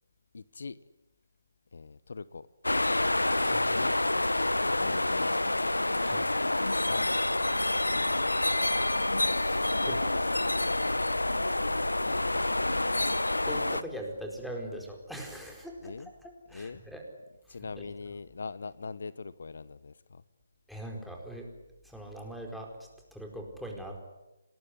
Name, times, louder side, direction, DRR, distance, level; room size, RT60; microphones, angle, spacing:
voice 1, 0.3-0.8 1.7-2.5 3.7-4.0 4.8-5.4 6.7-7.1 7.9-8.3 12.0-12.8 15.8-16.1 16.5-16.8 17.5-20.2, left 4 dB, 65° left, 17 dB, 0.9 m, -41 dB
sound 1, 2.6-13.8, left 2 dB, 90° left, 1.1 m, -28 dB
voice 2, 3.4-3.7 6.0-6.3 9.3-10.2 13.4-17.0 17.5-17.9 20.7-21.5 21.8-24.0, right 1 dB, ahead, 1 dB, 4.5 m, -42 dB
27.5 x 20.0 x 9.9 m, 1.0 s
figure-of-eight pair, 150°, 0 cm